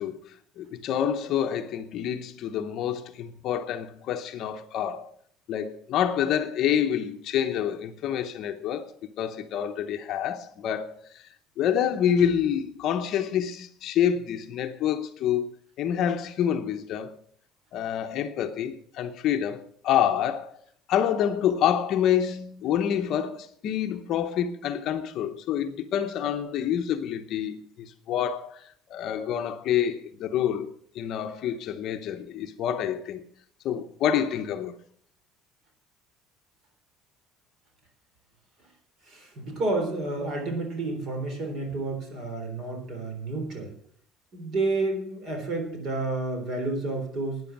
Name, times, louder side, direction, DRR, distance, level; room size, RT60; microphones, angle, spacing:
voice 1, 0.0-5.1 5.5-8.9 9.2-11.3 11.6-15.5 15.8-17.1 17.7-20.5 20.9-33.2 33.6-34.7, left 9 dB, 45° left, 0.8 m, -27 dB
voice 2, 39.1-43.7 44.3-47.4, right 2 dB, 35° right, 3.6 m, -30 dB
12.5 x 9.6 x 5.9 m
cardioid pair, 175°, 0 cm